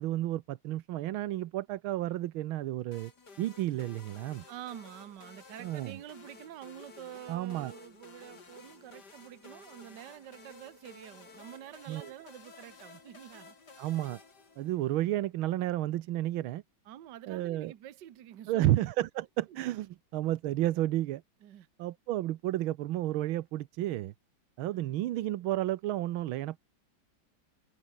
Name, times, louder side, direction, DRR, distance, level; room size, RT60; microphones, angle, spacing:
voice 1, 0.0-3.1 3.4-4.4 5.6-6.0 7.3-7.7 11.9-12.1 13.8-14.2 14.6-16.6 17.3-17.7 18.5-21.2 21.8-24.1 24.6-26.6, right 14 dB, 80° right, 1.6 m, -31 dB
sound 1, 2.9-15.1, left 4 dB, 50° left, 3.7 m, -54 dB
voice 2, 4.5-13.6 16.9-18.8 19.5-19.6 21.4-21.7 24.7-24.8, right 11 dB, 60° right, 1.6 m, -47 dB
omnidirectional pair, 2.3 m